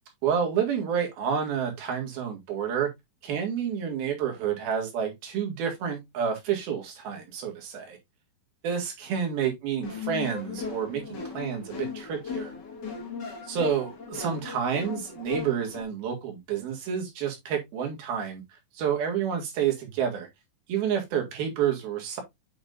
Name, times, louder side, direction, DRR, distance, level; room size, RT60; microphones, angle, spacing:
voice 1, 0.2-2.9 3.2-8.0 8.6-12.5 13.5-18.4 18.8-20.3 20.7-22.2, right 8 dB, 90° right, 3.8 m, -29 dB
sound 1, 9.8-15.8, left 5 dB, 40° left, 1.9 m, -37 dB
8.6 x 5.3 x 2.6 m
omnidirectional pair, 4.2 m